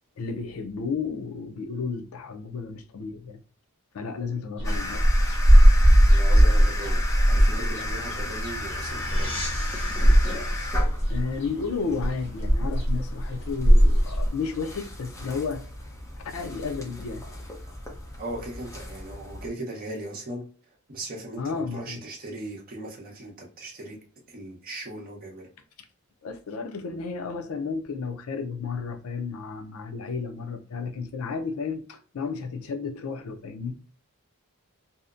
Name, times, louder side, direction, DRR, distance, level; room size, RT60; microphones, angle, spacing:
voice 1, 0.2-3.4 3.9-5.0 11.1-15.6 16.3-17.2 21.4-22.0 26.2-33.8, left 5 dB, 70° left, 0.4 m, -32 dB
sound 1, 4.6-14.3, equal, 55° left, 0.8 m, -19 dB
sound 2, 4.6-19.5, left 2 dB, 15° left, 0.5 m, -36 dB
voice 2, 6.1-7.0 7.3-9.4 18.2-20.4 20.9-24.0 24.3-25.5, right 1 dB, 40° right, 0.8 m, -38 dB
sound 3, 7.8-12.7, left 1 dB, 35° left, 1.3 m, -40 dB
2.7 x 2.1 x 2.4 m
head